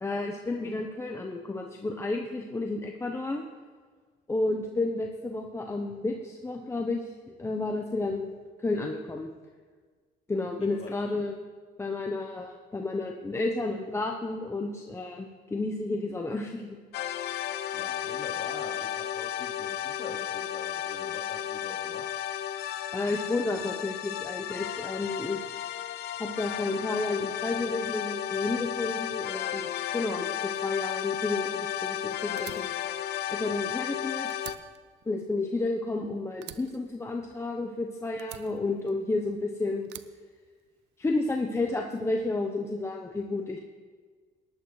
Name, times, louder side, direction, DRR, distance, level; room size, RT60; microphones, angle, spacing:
voice 1, 0.0-3.4 4.3-9.3 10.3-11.4 11.8-16.7 17.5-17.7 22.9-25.6 26.2-32.7 33.3-34.3 35.1-39.9 41.0-43.6, left 2 dB, 15° left, 2 dB, 0.8 m, -31 dB
sound 1, 16.9-34.6, left 11 dB, 75° left, 0.6 m, -33 dB
voice 2, 17.7-22.1, left 4 dB, 40° left, -3 dB, 3.5 m, -44 dB
Fire, 32.4-34.0 34.3-36.0 36.4-37.7 38.2-39.3 39.8-41.0, right 14 dB, 85° right, 0.6 m, -47 dB
18.5 x 11.0 x 3.2 m, 1.5 s
cardioid pair, 110°, 17 cm